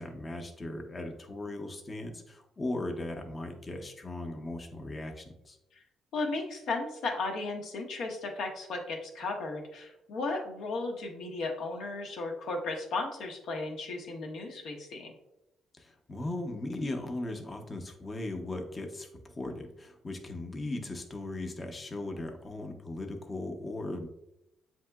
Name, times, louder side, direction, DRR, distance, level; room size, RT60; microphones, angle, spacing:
voice 1, 0.0-5.6 15.8-24.1, left 2 dB, 30° left, 3 dB, 0.7 m, -38 dB
voice 2, 6.1-15.1, left 3 dB, 75° left, 2 dB, 0.8 m, -35 dB
7.6 x 2.8 x 2.2 m, 0.87 s
cardioid pair, 90°, 0 cm